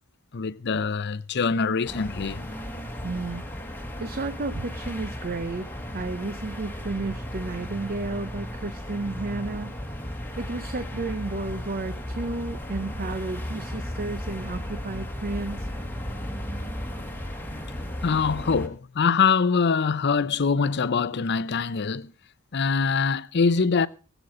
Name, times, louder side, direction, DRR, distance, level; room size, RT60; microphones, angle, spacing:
voice 1, 0.3-2.5 18.0-22.1 22.5-23.9, left 5 dB, 50° left, 0.6 m, -24 dB
sound 1, 1.8-18.7, left 1 dB, 10° left, 1.7 m, -35 dB
voice 2, 3.0-3.4 3.8-9.8 10.4-15.7, right 3 dB, 45° right, 0.7 m, -32 dB
19.5 x 8.1 x 4.8 m
head